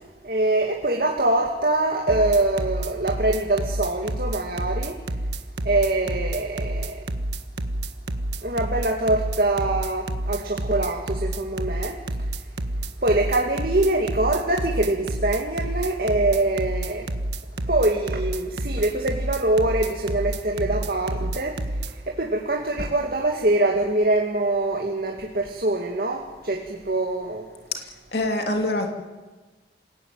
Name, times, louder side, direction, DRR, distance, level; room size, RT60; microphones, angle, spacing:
voice 1, 0.2-5.0 5.6-7.0 8.4-12.0 13.0-17.1 17.6-27.5, right 2 dB, 55° right, 1 dB, 2.3 m, -24 dB
sound 1, 2.1-21.9, right 1 dB, 85° right, 1.5 m, -28 dB
voice 2, 27.7-28.9, left 2 dB, 65° left, 4 dB, 2.7 m, -26 dB
27.0 x 17.5 x 9.2 m, 1.3 s
head